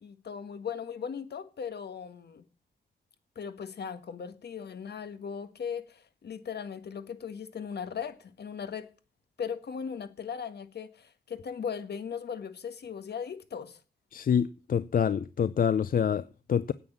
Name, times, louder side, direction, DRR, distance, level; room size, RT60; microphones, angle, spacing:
voice 1, 0.0-2.4 3.3-8.9 9.4-13.8, left 7 dB, 70° left, 1.7 m, -38 dB
voice 2, 14.1-16.7, left 8 dB, 55° left, 0.5 m, -26 dB
9.6 x 8.9 x 7.3 m
wide cardioid pair, 120°, 18 cm